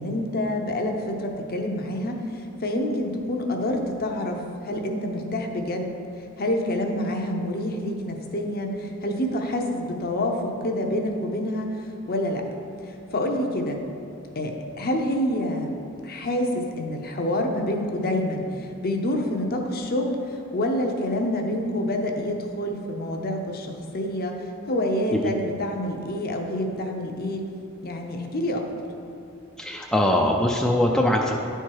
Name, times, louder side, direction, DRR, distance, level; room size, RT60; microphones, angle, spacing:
voice 1, 0.0-5.9 6.4-11.7 12.1-12.5 12.9-13.8 14.4-15.7 16.0-27.5 27.8-28.7, left 1 dB, 45° left, 3 dB, 0.7 m, -27 dB
voice 2, 29.6-31.3, left 1 dB, 5° left, -1 dB, 0.4 m, -22 dB
10.5 x 4.5 x 4.7 m, 2.6 s
head